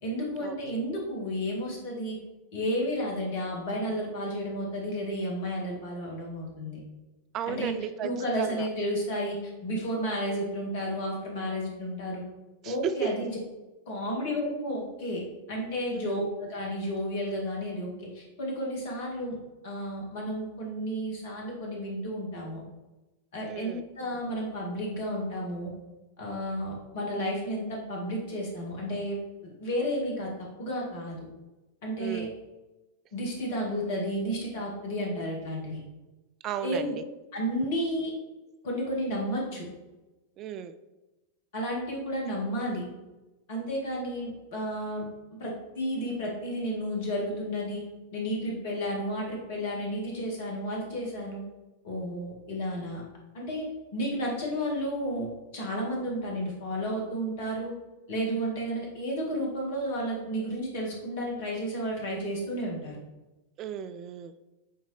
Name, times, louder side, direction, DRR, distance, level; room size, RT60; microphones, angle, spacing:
voice 1, 0.0-2.2 2.5-6.8 7.5-7.7 8.0-12.2 12.6-13.4 13.9-15.2 15.5-19.4 19.6-22.6 23.3-25.7 26.2-30.3 30.6-31.3 31.8-32.3 33.1-35.8 36.6-36.9 37.3-38.1 38.6-39.7 41.5-42.9 43.5-45.1 45.4-47.8 48.1-51.4 51.8-53.0 53.3-53.7 53.9-55.3 55.5-57.7 58.1-63.0, equal, 50° left, -2 dB, 2.0 m, -32 dB
voice 2, 7.3-8.1 8.4-8.7 12.6-12.9 15.9-16.2 23.5-23.8 32.0-32.3 36.4-36.9 40.4-40.7 63.6-64.3, right 9 dB, 35° right, 11 dB, 0.3 m, -34 dB
8.7 x 3.7 x 3.4 m, 1.1 s
figure-of-eight pair, 90°, 0 cm